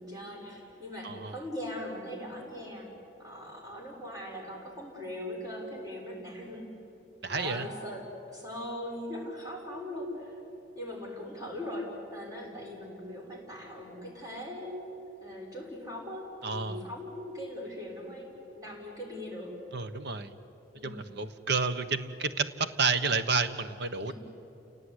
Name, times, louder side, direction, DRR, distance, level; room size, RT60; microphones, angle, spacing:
voice 1, 0.0-2.9 3.2-6.7 7.3-8.1 8.3-10.3 10.7-19.5 20.7-21.1 24.1-24.2, left 1 dB, 20° right, -2 dB, 6.3 m, -40 dB
voice 2, 1.0-1.4 7.2-7.7 16.4-16.8 19.7-20.3 20.8-24.1, right 4 dB, 60° right, 10 dB, 1.2 m, -30 dB
29.5 x 18.0 x 10.0 m, 3.0 s
head